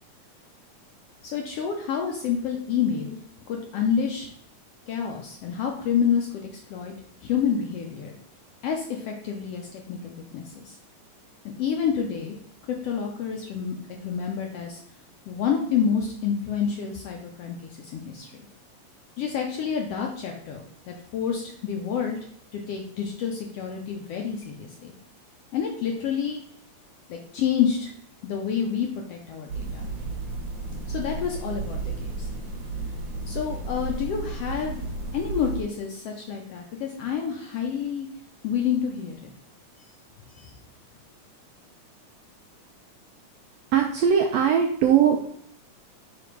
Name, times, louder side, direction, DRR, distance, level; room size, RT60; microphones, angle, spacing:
voice 1, 1.2-3.2 3.5-4.3 4.9-6.9 7.2-8.2 8.6-10.8 11.4-12.4 12.7-13.8 14.0-14.8 15.3-18.4 19.2-22.2 22.5-24.9 25.5-26.4 27.1-27.9 28.2-29.9 30.9-32.3 33.3-34.8 35.1-38.1 38.4-39.3 40.3-40.6, left 7 dB, 75° left, 1 dB, 1.4 m, -28 dB
sound 1, 29.5-35.6, right 3 dB, 60° right, 2.1 m, -33 dB
voice 2, 43.7-45.2, right 8 dB, 85° right, 3 dB, 1.5 m, -20 dB
5.2 x 4.8 x 4.5 m, 0.67 s
omnidirectional pair, 3.5 m